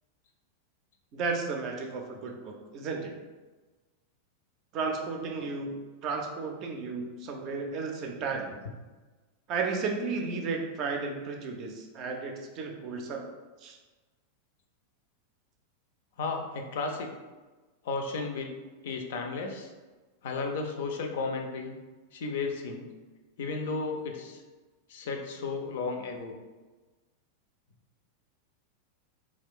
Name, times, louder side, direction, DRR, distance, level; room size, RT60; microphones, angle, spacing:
voice 1, 1.1-3.1 4.7-5.8 6.0-8.5 9.5-13.2 13.6-13.8, right 4 dB, 40° right, 2 dB, 0.4 m, -33 dB
voice 2, 16.2-17.1 17.8-18.5 18.8-19.7 20.2-21.8 22.1-22.9 23.4-24.4 24.9-26.4, left 4 dB, 55° left, 4 dB, 0.4 m, -33 dB
2.4 x 2.2 x 3.5 m, 1.2 s
figure-of-eight pair, 90°, 0 cm